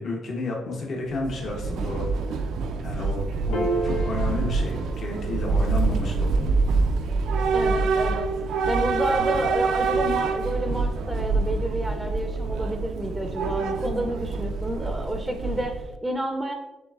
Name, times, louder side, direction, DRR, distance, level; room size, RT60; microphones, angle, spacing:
voice 1, 0.0-2.5 2.8-6.5, left 2 dB, 55° left, -1 dB, 0.9 m, -32 dB
Train / Subway metro underground, 1.1-15.9, right 4 dB, 80° right, 0.4 m, -26 dB
Piano, 3.5-10.2, right 1 dB, 85° left, 0.8 m, -35 dB
voice 2, 7.5-8.3 8.7-16.5, right 1 dB, 10° right, 4 dB, 0.5 m, -30 dB
7.0 x 3.2 x 2.4 m, 1.1 s
cardioid pair, 90°, 0 cm